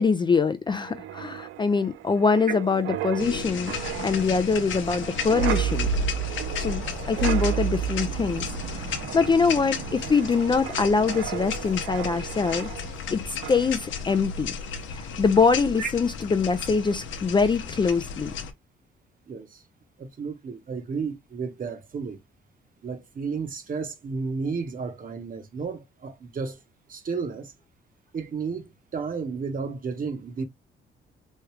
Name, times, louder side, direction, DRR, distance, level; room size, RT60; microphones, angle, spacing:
voice 1, 0.0-3.7 4.0-5.9 6.6-8.5 8.9-12.7 13.1-14.5 14.9-18.3, left 5 dB, 25° left, 0.3 m, -24 dB
Wind, 0.7-13.1 13.4-13.7, right 10 dB, 85° right, 0.4 m, -32 dB
sound 1, 3.2-18.5, left 5 dB, 75° left, 0.7 m, -34 dB
voice 2, 19.3-19.6 20.0-22.2 22.8-26.6 26.9-27.5 28.1-30.4, right 5 dB, 45° right, 0.9 m, -32 dB
3.2 x 2.3 x 3.1 m
cardioid pair, 90°, 20 cm